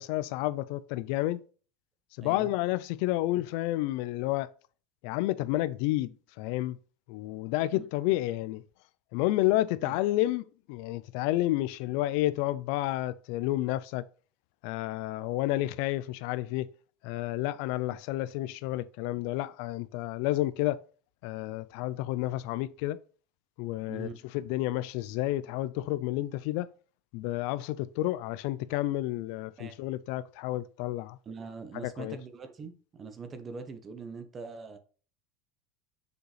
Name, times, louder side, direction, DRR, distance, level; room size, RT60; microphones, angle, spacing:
voice 1, 0.0-1.4 2.2-4.5 5.0-6.1 6.4-6.8 7.1-8.6 9.1-14.0 14.6-16.7 17.0-20.8 21.2-23.0 23.6-24.1 24.3-26.7 27.1-31.2 31.8-32.2, left 16 dB, 60° left, 0.4 m, -30 dB
voice 2, 2.2-2.5 3.3-3.4 7.7-7.8 9.8-10.0 17.9-18.0 23.9-24.2 29.6-29.8 31.2-34.8, right 4 dB, 20° right, 0.9 m, -43 dB
6.4 x 5.2 x 3.3 m
supercardioid pair, 160°, 0 cm